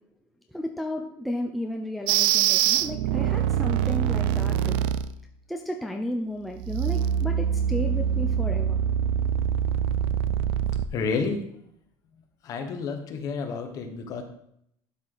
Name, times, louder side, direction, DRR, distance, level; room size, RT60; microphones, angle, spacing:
voice 1, 0.5-4.8 5.5-8.8, left 1 dB, ahead, 2 dB, 0.5 m, -33 dB
sound 1, 2.1-5.1 6.6-10.9, right 9 dB, 65° right, 0.4 m, -24 dB
voice 2, 10.9-11.4 12.4-14.2, left 5 dB, 40° left, 5 dB, 1.2 m, -30 dB
12.0 x 4.9 x 4.0 m, 0.72 s
cardioid pair, 165°, 9 cm